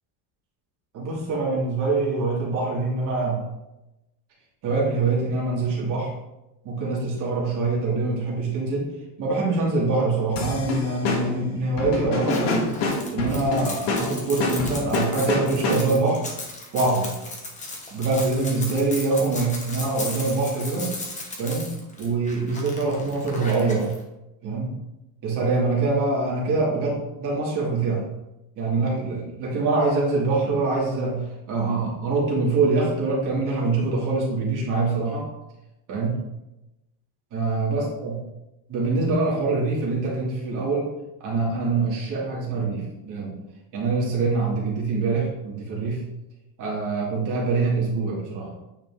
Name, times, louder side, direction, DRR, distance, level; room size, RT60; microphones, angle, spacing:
voice 1, 0.9-3.4 4.6-6.1 6.6-8.9 9.2-12.7 13.1-16.2 16.7-17.1 17.9-20.9 21.4-23.9 24.4-24.7 25.2-28.0 28.6-35.3 35.9-36.2 37.3-38.1 38.7-40.9 41.2-43.3 43.7-46.0 46.6-48.5, right 3 dB, 40° right, -4 dB, 2.8 m, -24 dB
sound 1, 10.4-16.1, left 2 dB, 55° left, 1.8 m, -27 dB
sound 2, 12.3-24.0, left 2 dB, 15° left, 1.1 m, -36 dB
9.4 x 4.9 x 3.8 m, 0.95 s
cardioid pair, 175°, 49 cm